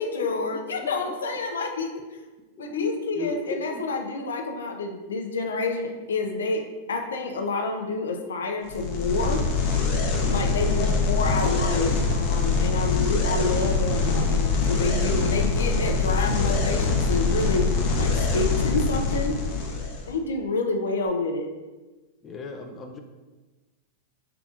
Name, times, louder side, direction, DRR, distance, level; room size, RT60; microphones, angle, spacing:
voice 1, 0.0-2.0 2.6-9.4 10.3-17.7 18.0-19.4 20.1-21.5, left 3 dB, 90° left, 4 dB, 0.6 m, -28 dB
voice 2, 2.6-2.9 3.1-3.6 10.5-11.0 22.2-23.0, left 5 dB, 25° left, 4 dB, 0.5 m, -34 dB
sound 1, 8.7-20.1, left 4 dB, 50° left, 0.9 m, -24 dB
5.7 x 3.7 x 2.5 m, 1.2 s
hypercardioid pair, 120°, 0 cm